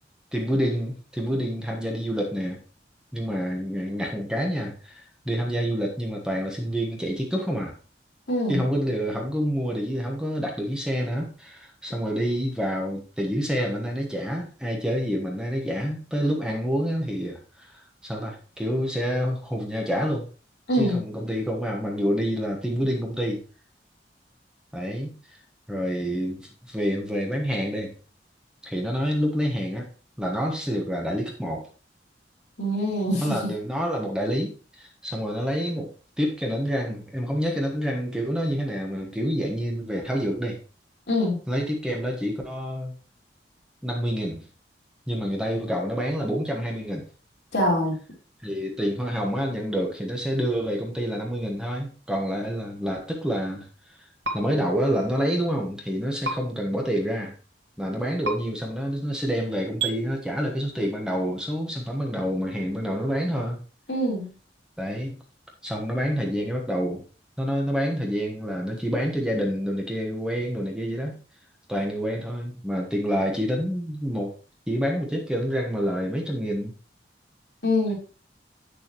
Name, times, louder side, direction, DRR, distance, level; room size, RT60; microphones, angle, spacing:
voice 1, 0.3-2.6 3.1-7.8 8.5-20.3 20.7-23.4 24.7-25.4 25.7-27.9 28.6-29.9 30.2-31.7 33.2-35.9 36.2-40.6 41.5-42.9 43.8-44.5 45.1-47.1 48.4-53.7 54.3-57.3 57.8-63.6 64.8-65.2 65.6-67.0 67.4-71.2 71.7-74.3 74.7-76.7, equal, 5° right, 1.3 m, -28 dB
voice 2, 8.3-8.6 20.7-21.0 32.6-33.5 41.1-41.4 47.5-48.0 63.9-64.3 77.6-78.0, left 1 dB, 80° left, 3.4 m, -24 dB
sound 1, 54.2-54.4 56.2-56.4 58.2-58.4 59.8-59.9, right 3 dB, 85° right, 1.7 m, -27 dB
8.1 x 6.8 x 3.0 m
head